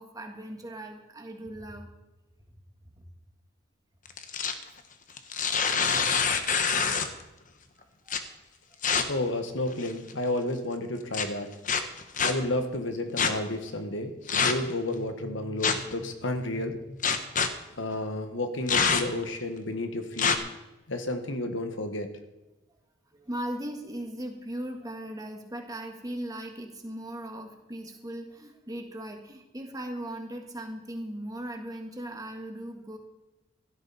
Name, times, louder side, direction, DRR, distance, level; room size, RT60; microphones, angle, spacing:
voice 1, 0.0-1.9 6.4-6.5 8.0-8.1 23.1-33.0, right 1 dB, 20° right, 3 dB, 1.7 m, -38 dB
sound 1, 4.1-4.6 5.2-7.2 8.1-8.2 8.8-9.0 9.7-10.1 11.1-11.3 11.7-12.3 13.2-13.3 14.3-14.7 15.6-15.9 17.0-17.5 18.7-19.2 20.2-20.4, left 6 dB, 40° left, 1.1 m, -25 dB
voice 2, 9.1-11.5 12.2-17.0 17.8-20.4 20.9-22.1, left 2 dB, 65° left, 7 dB, 1.6 m, -31 dB
16.0 x 13.0 x 4.3 m, 1.0 s
head